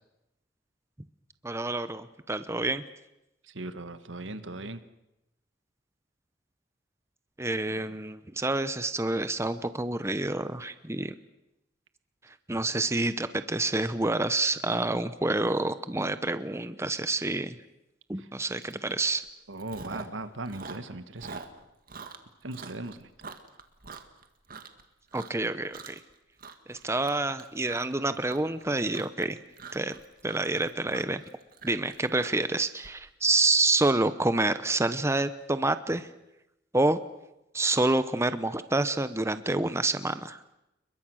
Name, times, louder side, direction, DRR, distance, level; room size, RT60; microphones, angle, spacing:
voice 1, 1.4-2.8 7.4-11.1 12.5-17.6 18.1-19.2 25.1-26.0 26.7-29.4 29.7-29.9 30.2-31.2 31.6-36.1 36.7-37.0 37.5-40.4, right 2 dB, 15° right, 12 dB, 0.9 m, -28 dB
voice 2, 3.4-4.8 18.2-18.3 19.5-21.4 22.4-23.1, right 2 dB, 80° right, 11 dB, 1.5 m, -38 dB
Chewing mastication, 18.7-18.9 19.2-20.2 20.5-24.8 25.1-25.5 25.7-26.1 26.4-32.9, right 4 dB, 50° right, 2.0 m, -44 dB
29.0 x 22.5 x 6.4 m, 0.90 s
head